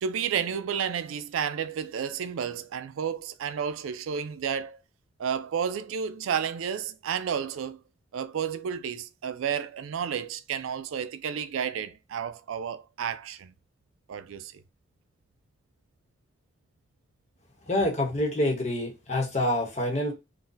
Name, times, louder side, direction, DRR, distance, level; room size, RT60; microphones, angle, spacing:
voice 1, 0.0-4.8 5.2-7.8 8.1-13.5 14.1-14.5, right 7 dB, 90° right, 0.4 m, -31 dB
voice 2, 17.7-20.1, left 1 dB, 35° left, 0.9 m, -27 dB
3.9 x 2.2 x 2.6 m
head